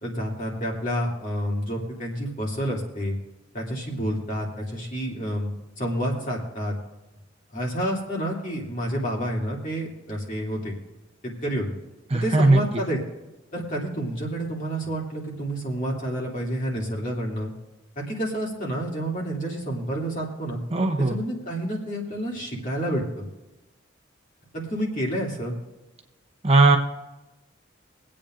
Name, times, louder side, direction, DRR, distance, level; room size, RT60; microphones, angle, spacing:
voice 1, 0.0-3.2 3.5-5.5 5.8-6.7 7.5-10.7 11.2-11.7 12.1-13.0 13.5-17.5 18.0-20.6 21.0-23.2 24.5-25.5, equal, 40° left, -3 dB, 2.8 m, -29 dB
voice 2, 12.1-12.6 20.7-21.2 26.4-26.8, right 2 dB, 30° right, 2 dB, 0.9 m, -18 dB
24.5 x 8.7 x 2.6 m, 1.0 s
head